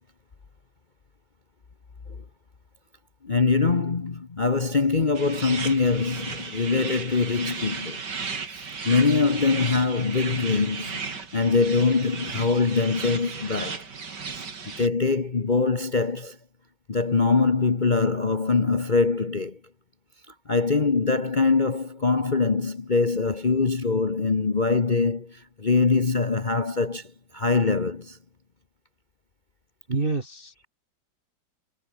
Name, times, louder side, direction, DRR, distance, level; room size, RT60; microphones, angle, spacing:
voice 1, 3.2-8.0 8.5-13.9 14.8-16.4 16.9-19.6 20.5-28.2, left 4 dB, 30° left, 1.0 m, -23 dB
sound 1, 5.1-14.9, right 5 dB, 60° right, 3.2 m, -35 dB
voice 2, 29.9-30.7, right 3 dB, 30° right, 2.2 m, -28 dB
omnidirectional pair, 2.1 m